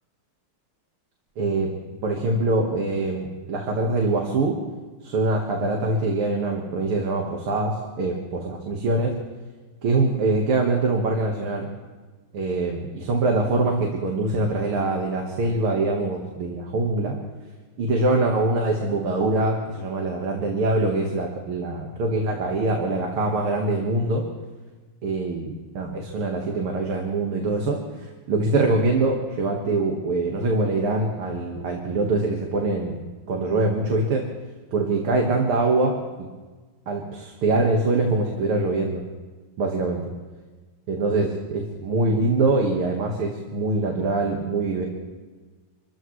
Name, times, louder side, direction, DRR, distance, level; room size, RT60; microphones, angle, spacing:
voice 1, 1.4-1.7 2.0-4.5 5.0-9.1 9.8-11.7 12.3-17.2 17.8-24.2 25.0-27.8 28.3-33.0 33.3-34.2 34.7-36.3 36.9-39.0 39.6-40.0 40.9-44.9, right 2 dB, 80° right, 1 dB, 2.5 m, -24 dB
27.0 x 14.5 x 3.2 m, 1.3 s
omnidirectional pair, 2.4 m